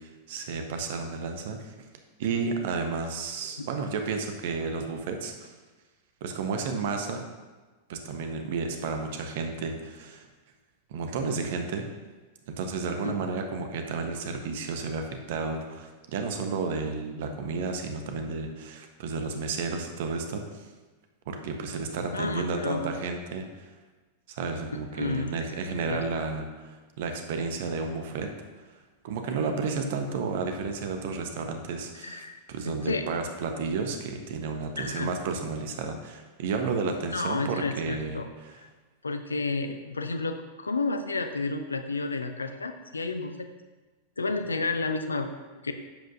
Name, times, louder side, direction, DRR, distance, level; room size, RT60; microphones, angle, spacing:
voice 1, 0.0-1.7 2.2-5.5 6.2-7.2 7.9-10.3 10.9-11.8 12.5-20.7 21.3-23.7 24.3-28.3 29.0-38.6, right 4 dB, 55° right, 5 dB, 1.1 m, -32 dB
voice 2, 22.1-22.9 25.0-25.3 25.7-26.0 32.0-33.1 34.8-35.1 37.1-38.3 38.6-38.7 39.0-43.5 44.2-45.7, left 3 dB, 75° left, 8 dB, 0.7 m, -31 dB
10.5 x 7.8 x 2.7 m, 1.3 s
figure-of-eight pair, 90°, 0 cm